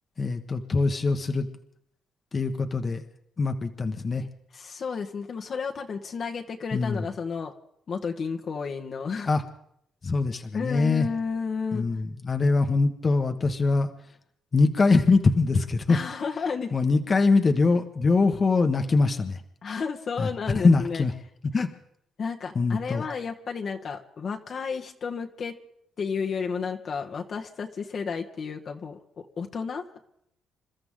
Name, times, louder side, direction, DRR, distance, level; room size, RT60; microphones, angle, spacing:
voice 1, 0.2-1.5 2.3-3.0 3.4-4.2 6.7-7.0 9.3-9.4 10.0-11.1 11.7-13.9 14.5-16.0 16.7-19.4 20.2-20.3 20.5-21.1 21.5-21.7 22.5-23.0, left 3 dB, 35° left, 5 dB, 1.3 m, -23 dB
voice 2, 4.5-7.5 7.9-9.3 10.5-11.9 15.9-16.7 19.6-21.0 22.2-25.6 26.0-29.8, left 5 dB, 50° left, 3 dB, 1.4 m, -32 dB
28.0 x 13.5 x 3.8 m, 0.73 s
cardioid pair, 90°, 0 cm